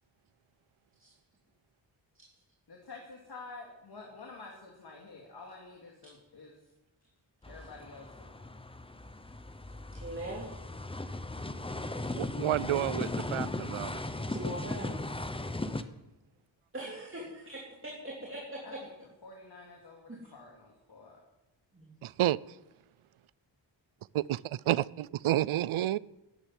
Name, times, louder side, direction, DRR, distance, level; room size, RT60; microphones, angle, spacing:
voice 1, 2.7-6.6 7.5-8.5 18.6-18.9 19.2-21.2, left 3 dB, 50° left, 0 dB, 2.6 m, -49 dB
sound 1, 7.4-15.8, left 2 dB, 10° left, 0.7 m, -37 dB
voice 2, 10.0-10.6 14.3-14.9 16.7-18.6 20.1-20.2 21.7-21.9, right 1 dB, 25° right, -3 dB, 2.9 m, -41 dB
voice 3, 12.2-14.0 22.0-22.4 24.1-26.0, right 13 dB, 85° right, 22 dB, 0.6 m, -30 dB
13.5 x 10.5 x 9.3 m, 0.96 s
wide cardioid pair, 160°, 48 cm